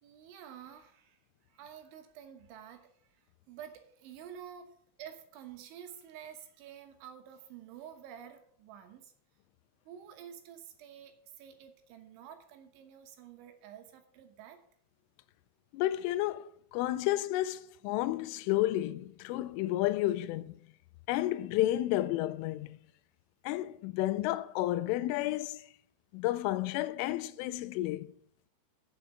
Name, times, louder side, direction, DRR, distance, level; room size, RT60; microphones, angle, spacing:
voice 1, 0.0-9.1 9.9-14.6, right 9 dB, 75° right, 3.5 m, -50 dB
voice 2, 15.7-20.6 21.1-22.8 23.4-25.7 26.1-28.1, left 15 dB, 90° left, 3.1 m, -31 dB
7.6 x 7.2 x 8.3 m
omnidirectional pair, 5.6 m